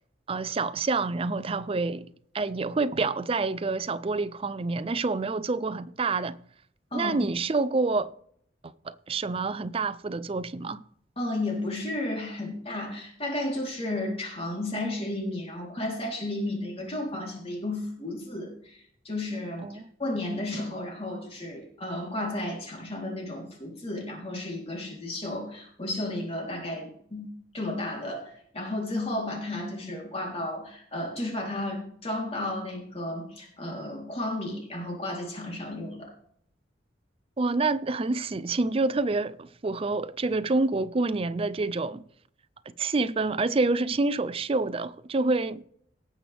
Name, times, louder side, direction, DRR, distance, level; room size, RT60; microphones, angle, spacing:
voice 1, 0.3-2.1 2.3-6.4 6.9-8.1 8.8-10.8 19.6-19.8 37.4-42.0 42.8-45.6, right 3 dB, 30° right, 0.5 m, -27 dB
voice 2, 11.2-18.8 19.0-27.3 27.5-36.1, left 1 dB, 30° left, 3.6 m, -33 dB
18.5 x 7.6 x 3.5 m
head